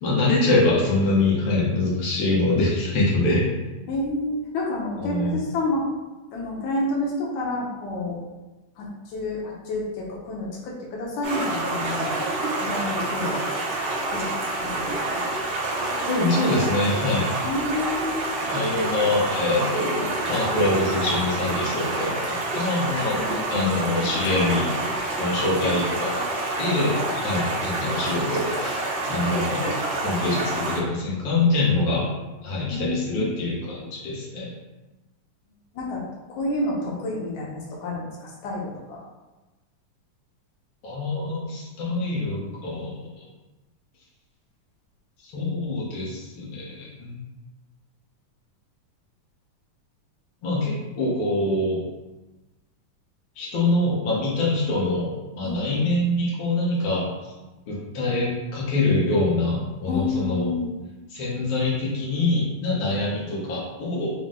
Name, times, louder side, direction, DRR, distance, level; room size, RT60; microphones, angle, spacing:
voice 1, 0.0-3.4 5.0-5.4 16.1-17.4 18.5-23.2 23.5-26.2 26.6-29.8 30.0-32.1 32.4-34.5 40.8-43.2 45.2-47.2 50.4-51.8 53.4-57.0 57.7-60.5 61.1-64.1, left 2 dB, 90° left, -6 dB, 1.1 m, -24 dB
voice 2, 3.9-5.9 6.3-8.2 8.8-12.2 12.6-13.5 14.1-14.3 14.6-15.2 17.4-18.3 23.1-23.7 32.7-33.3 35.7-36.0 36.3-39.0 55.4-55.9 59.9-60.7 62.9-63.0, left 2 dB, 75° left, -3 dB, 1.9 m, -29 dB
Stream, 11.2-30.8, right 2 dB, 60° right, 1.6 m, -28 dB
5.8 x 2.1 x 3.7 m, 1.1 s
omnidirectional pair, 3.8 m